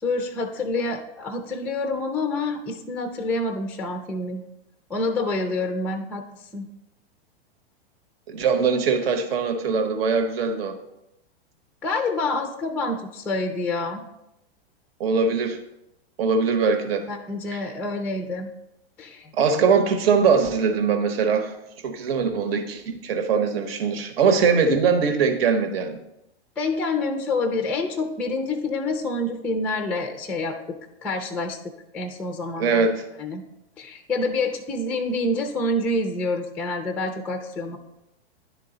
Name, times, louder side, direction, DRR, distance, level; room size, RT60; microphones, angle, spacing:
voice 1, 0.0-4.4 4.9-6.2 6.5-6.7 11.8-14.0 17.1-18.5 19.0-19.3 26.6-30.8 31.0-31.6 31.9-32.9 33.2-33.4 33.8-37.8, left 2 dB, 5° left, 6 dB, 0.3 m, -27 dB
voice 2, 8.3-10.8 15.0-15.6 16.2-17.0 17.5-17.6 19.3-21.5 21.8-26.0 32.6-33.0, right 5 dB, 70° right, 7 dB, 1.0 m, -21 dB
10.5 x 3.7 x 3.8 m, 0.87 s
hypercardioid pair, 125°, 31 cm